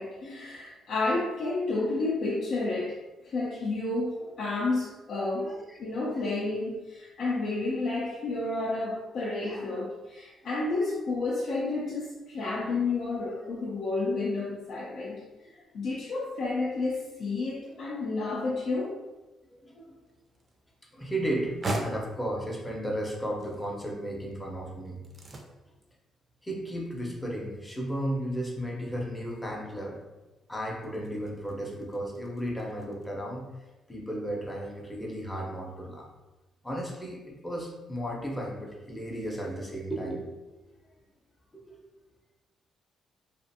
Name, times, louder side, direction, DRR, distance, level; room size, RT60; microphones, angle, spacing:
voice 1, 0.0-3.0 3.2-5.5 5.8-15.2 15.7-19.0, left 3 dB, 65° left, -5 dB, 0.5 m, -30 dB
voice 2, 5.4-5.8 6.1-6.2 9.4-9.7 10.4-10.9 17.6-17.9 18.2-18.3 19.6-20.0 20.9-25.0 26.4-30.0 30.5-33.4 33.9-36.1 36.6-40.3 41.5-41.9, right 1 dB, 10° left, -1 dB, 0.6 m, -34 dB
sound 1, 19.9-33.1, right 1 dB, 35° right, 0.4 m, -43 dB
2.5 x 2.4 x 2.6 m, 1.1 s
cardioid pair, 90°, 0 cm